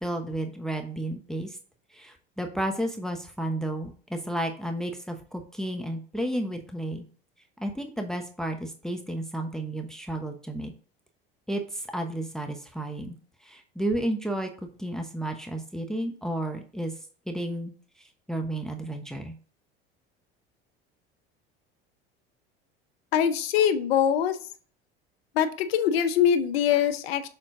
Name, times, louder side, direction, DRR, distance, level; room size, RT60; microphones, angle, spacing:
voice 1, 0.0-1.6 1.9-7.0 7.6-10.7 11.5-13.2 13.4-14.5 14.8-16.9 17.3-17.7 18.3-19.3, right 1 dB, ahead, 4 dB, 0.9 m, -32 dB
voice 2, 23.1-24.4 25.3-27.3, left 9 dB, 80° left, 10 dB, 0.8 m, -23 dB
6.7 x 3.8 x 3.7 m, 0.42 s
hypercardioid pair, 75°, 30 cm